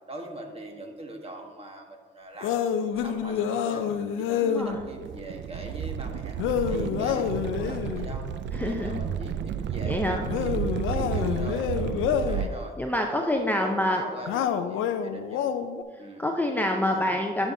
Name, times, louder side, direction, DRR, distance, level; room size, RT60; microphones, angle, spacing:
voice 1, 0.1-3.9 4.2-6.4 6.7-8.3 8.6-12.8 13.1-15.4 16.0-16.2 16.8-17.2, right 1 dB, 30° right, 2 dB, 1.3 m, -41 dB
sound 1, 2.4-4.8 6.4-8.0 10.2-12.5 14.3-15.8, left 8 dB, 85° left, 0.5 m, -27 dB
voice 2, 4.4-4.8 8.5-9.0 9.9-10.3 12.8-14.0 16.2-17.5, left 1 dB, 10° left, 2 dB, 0.5 m, -26 dB
sound 2, 4.7-12.5, right 8 dB, 65° right, 0.4 m, -32 dB
11.0 x 5.7 x 2.7 m, 1.5 s
cardioid pair, 90°, 20 cm